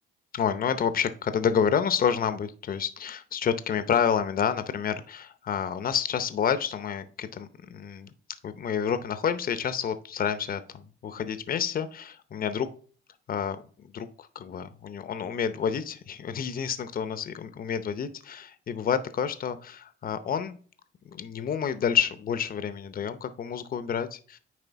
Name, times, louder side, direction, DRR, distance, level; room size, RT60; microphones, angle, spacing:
voice 1, 0.3-8.1 8.4-12.7 13.3-20.6 21.1-24.4, left 7 dB, 45° left, 11 dB, 0.7 m, -29 dB
9.3 x 3.2 x 4.6 m, 0.42 s
cardioid pair, 90°, 20 cm